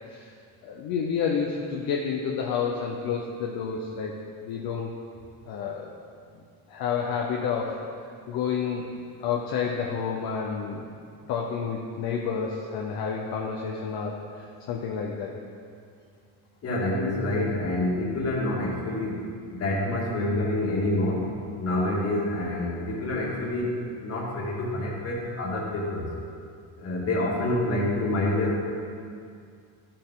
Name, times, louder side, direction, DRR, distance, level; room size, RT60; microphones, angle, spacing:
voice 1, 0.6-4.1 4.4-4.9 5.5-5.9 6.7-7.8 8.3-8.9 9.2-10.9 11.3-14.2 14.7-15.3, left 6 dB, 55° left, -1 dB, 0.9 m, -29 dB
voice 2, 16.6-19.2 19.5-21.2 21.6-23.7 24.0-26.1 26.8-28.6, left 1 dB, 35° left, -4 dB, 2.0 m, -27 dB
14.0 x 6.7 x 3.8 m, 2.3 s
cardioid pair, 180°, 43 cm